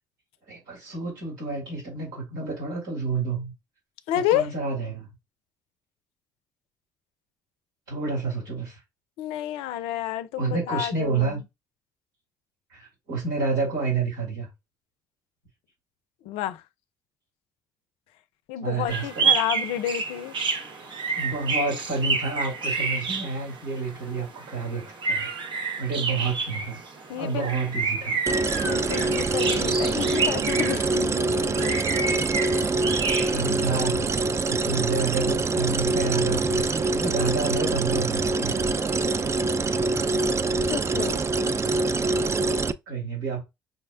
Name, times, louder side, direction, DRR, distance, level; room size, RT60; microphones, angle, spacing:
voice 1, 0.5-3.5 4.3-5.1 7.9-8.8 10.4-11.4 12.7-14.5 18.6-19.3 20.8-25.3 25.8-26.8 27.2-28.2 33.3-34.2 34.5-38.6 42.9-43.4, right 4 dB, 85° right, 2.1 m, -29 dB
voice 2, 4.1-4.5 9.2-11.4 16.2-16.6 18.5-20.3 27.1-27.5 28.6-32.1 33.0-33.1 40.1-40.3 40.7-41.2, left 12 dB, 75° left, 0.4 m, -30 dB
sound 1, 18.9-33.9, right 5 dB, 55° right, 0.9 m, -29 dB
sound 2, 28.3-42.7, right 3 dB, 30° right, 0.4 m, -25 dB
5.4 x 2.1 x 2.4 m
hypercardioid pair, 50°, 10 cm